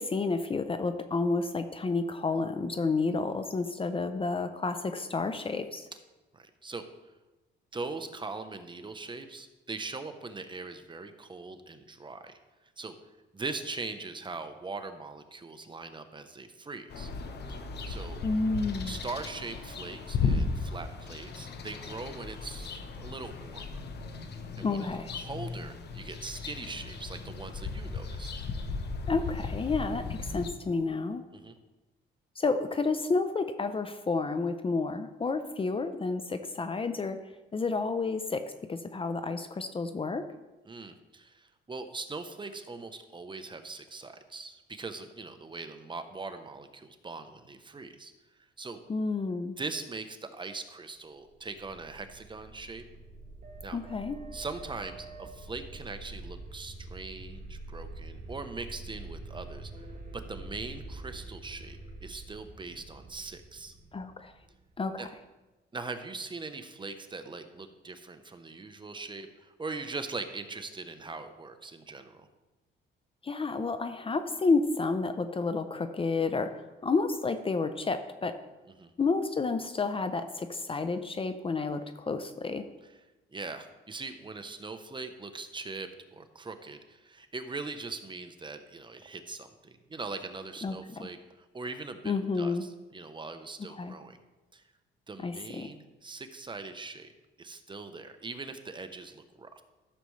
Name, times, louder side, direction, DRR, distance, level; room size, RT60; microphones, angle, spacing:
voice 1, 0.0-5.9 18.2-18.9 24.6-25.1 29.1-31.2 32.4-40.2 48.9-49.6 53.7-54.2 63.9-64.3 64.8-65.1 73.2-78.4 79.0-82.6 90.6-91.1 92.0-92.7 93.7-93.9 95.2-95.7, left 3 dB, 25° left, 10 dB, 0.6 m, -30 dB
voice 2, 6.3-6.9 7.7-12.4 12.8-13.0 13.3-17.1 17.5-18.2 18.9-23.9 24.6-24.8 25.1-28.4 31.3-31.6 40.7-48.1 48.6-48.8 49.6-52.8 53.6-53.8 54.3-59.9 60.1-63.7 65.0-65.1 65.7-72.3 78.8-78.9 83.3-94.2 94.5-94.6 95.1-97.1 97.4-99.6, right 3 dB, 25° right, 8 dB, 0.8 m, -41 dB
sound 1, 16.9-30.5, left 4 dB, 55° left, 1.0 m, -36 dB
sound 2, 51.3-65.1, right 2 dB, 40° right, 2.1 m, -45 dB
13.0 x 6.7 x 3.2 m, 1.1 s
cardioid pair, 90°, 20 cm